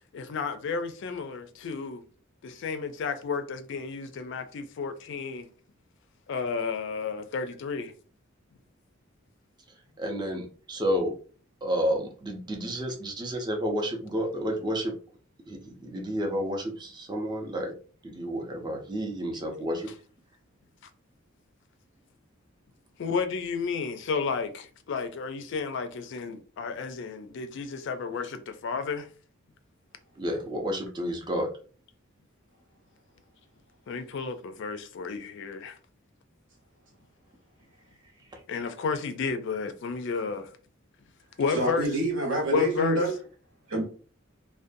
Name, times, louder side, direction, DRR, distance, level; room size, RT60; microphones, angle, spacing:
voice 1, 0.1-2.0 2.4-5.5 6.3-7.9 23.0-29.1 33.9-35.8 38.5-40.5 41.4-41.9 42.5-43.0, left 5 dB, 60° left, 0.4 m, -32 dB
voice 2, 10.0-11.1 11.6-14.9 15.5-17.7 18.0-19.9 30.2-31.5, equal, 20° right, 0.5 m, -30 dB
voice 3, 41.4-43.1 43.7-43.8, right 1 dB, 65° right, 0.9 m, -27 dB
2.5 x 2.2 x 2.5 m
head